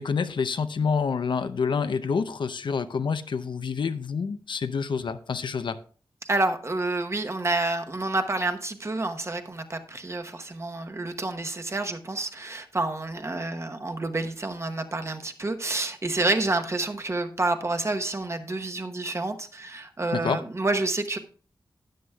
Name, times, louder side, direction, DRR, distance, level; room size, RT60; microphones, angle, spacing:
voice 1, 0.0-5.8 20.1-20.4, left 5 dB, 75° left, 11 dB, 0.6 m, -27 dB
voice 2, 6.2-21.2, right 2 dB, 35° right, 7 dB, 0.9 m, -29 dB
13.0 x 9.3 x 2.3 m, 0.41 s
wide cardioid pair, 90°, 8 cm